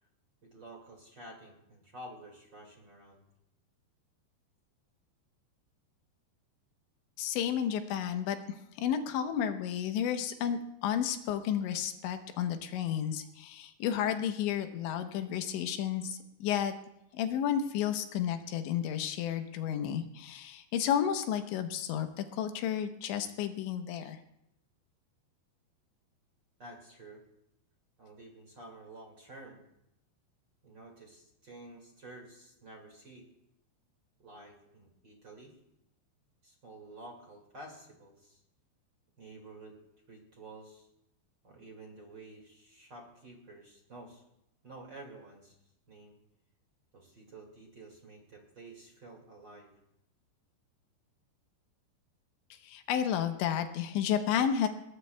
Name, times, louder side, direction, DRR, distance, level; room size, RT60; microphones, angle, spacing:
voice 1, 0.4-3.2 26.6-27.2 28.0-29.7 30.6-33.3 34.2-35.6 36.4-38.4 39.2-39.8 40.1-40.9 41.4-44.2 44.6-45.6 45.9-46.2 46.9-49.7, right 2 dB, 40° right, 0 dB, 1.8 m, -50 dB
voice 2, 7.2-16.7 17.1-24.2 52.6-54.7, left 9 dB, 85° left, 7 dB, 3.3 m, -32 dB
20.5 x 19.0 x 2.3 m, 0.82 s
omnidirectional pair, 5.2 m